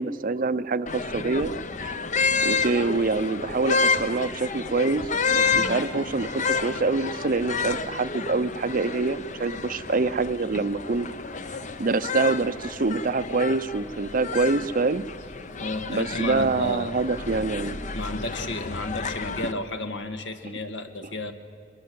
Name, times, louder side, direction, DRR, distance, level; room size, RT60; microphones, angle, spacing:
voice 1, 0.0-1.5 1.8-1.9 2.4-11.1 11.8-15.0 15.9-17.8, right 3 dB, 50° right, 14 dB, 0.7 m, -25 dB
sound 1, 0.9-19.5, left 4 dB, 45° left, 0.9 m, -30 dB
voice 2, 15.6-16.9 17.9-21.3, left 1 dB, 80° left, 7 dB, 1.8 m, -32 dB
23.0 x 21.5 x 7.7 m, 2.6 s
head